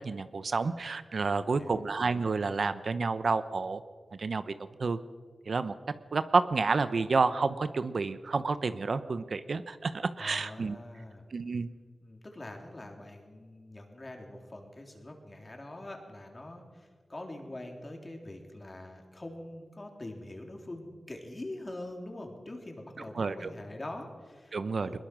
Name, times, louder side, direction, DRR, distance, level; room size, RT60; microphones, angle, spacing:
voice 1, 0.0-3.8 4.1-4.5 4.8-5.0 5.5-5.7 6.1-10.8 11.3-11.7 23.1-23.5 24.5-25.0, right 4 dB, 60° right, 12 dB, 0.8 m, -29 dB
voice 2, 1.3-1.8 10.2-11.2 12.0-25.0, left 1 dB, 30° left, 2 dB, 3.6 m, -44 dB
22.0 x 21.0 x 6.2 m, 1.5 s
wide cardioid pair, 105°, 0 cm